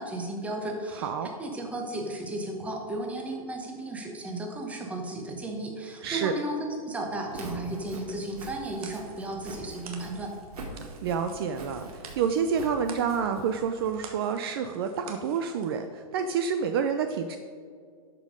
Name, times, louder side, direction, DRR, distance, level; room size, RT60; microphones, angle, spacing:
voice 1, 0.0-10.3, right 2 dB, 5° right, 2 dB, 0.9 m, -34 dB
voice 2, 0.9-1.3 6.0-6.4 11.0-17.4, right 6 dB, 40° right, 7 dB, 0.5 m, -28 dB
Walk footsteps, 7.2-14.0, right 2 dB, 90° right, 2.6 m, -44 dB
sound 1, 8.2-15.8, right 5 dB, 70° right, 1.6 m, -50 dB
12.0 x 5.3 x 5.1 m, 2.1 s
hypercardioid pair, 160°, 19 cm